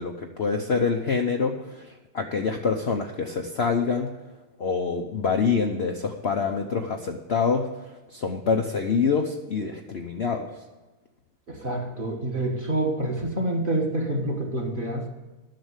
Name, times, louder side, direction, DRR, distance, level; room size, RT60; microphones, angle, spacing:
voice 1, 0.0-4.1 4.6-7.7 8.1-10.5, left 5 dB, 50° left, 2 dB, 0.8 m, -26 dB
voice 2, 11.5-15.1, right 1 dB, 30° right, 1 dB, 1.6 m, -27 dB
11.0 x 6.8 x 8.1 m, 1.1 s
omnidirectional pair, 1.9 m